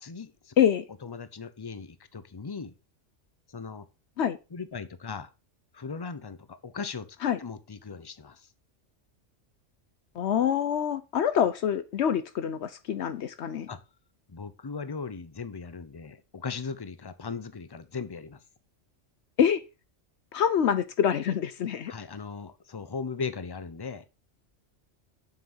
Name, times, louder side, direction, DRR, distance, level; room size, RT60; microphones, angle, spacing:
voice 1, 0.0-0.5 1.0-2.7 3.5-3.9 4.5-5.3 5.7-7.1 7.4-8.5 13.7-13.8 14.3-18.4 21.9-24.0, left 5 dB, 25° left, 0.6 m, -38 dB
voice 2, 10.2-13.7 19.4-19.6 20.3-21.9, left 8 dB, 70° left, 0.9 m, -25 dB
7.5 x 5.9 x 5.5 m
omnidirectional pair, 1.2 m